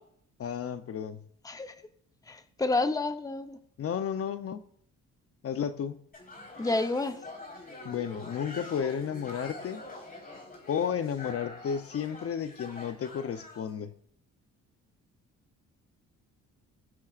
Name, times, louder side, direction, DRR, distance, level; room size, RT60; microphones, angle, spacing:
voice 1, 0.4-1.2 3.8-4.6 5.4-6.0 7.8-9.8 10.7-13.9, left 8 dB, 50° left, 11 dB, 0.7 m, -32 dB
voice 2, 2.3-3.6 6.6-7.2, left 2 dB, 10° left, 9 dB, 0.8 m, -29 dB
sound 1, 6.1-13.7, left 2 dB, 30° left, 4.1 m, -45 dB
21.0 x 7.5 x 2.5 m, 0.63 s
cardioid pair, 90°, 30 cm